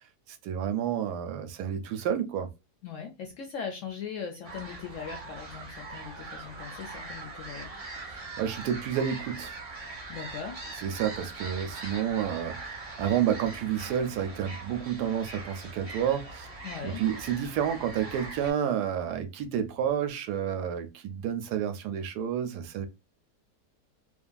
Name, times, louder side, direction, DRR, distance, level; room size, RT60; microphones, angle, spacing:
voice 1, 0.3-2.5 8.0-9.5 10.8-16.5 16.8-22.9, right 9 dB, 80° right, 1.1 m, -30 dB
voice 2, 2.8-7.7 10.1-10.6 16.6-17.0, left 7 dB, 70° left, 0.7 m, -39 dB
sound 1, 4.4-18.5, right 3 dB, 35° right, 0.5 m, -42 dB
2.7 x 2.5 x 2.2 m
omnidirectional pair, 1.8 m